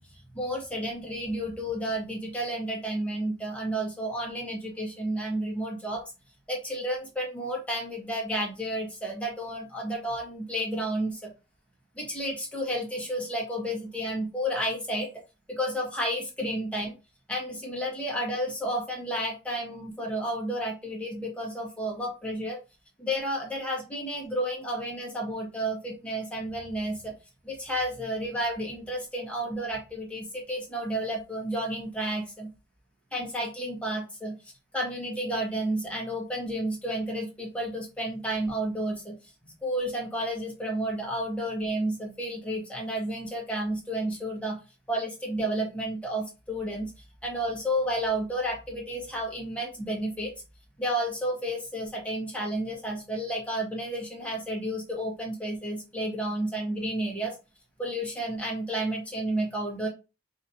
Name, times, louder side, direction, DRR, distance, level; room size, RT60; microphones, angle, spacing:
voice 1, 0.3-6.0 6.5-11.3 12.0-15.1 15.5-16.9 17.3-22.6 23.0-27.1 27.4-32.5 33.1-34.3 34.7-39.1 39.4-44.6 44.9-46.9 47.2-50.3 50.8-57.4 57.8-59.9, right 1 dB, 5° left, -2 dB, 1.3 m, -31 dB
5.0 x 2.8 x 2.7 m, 0.29 s
head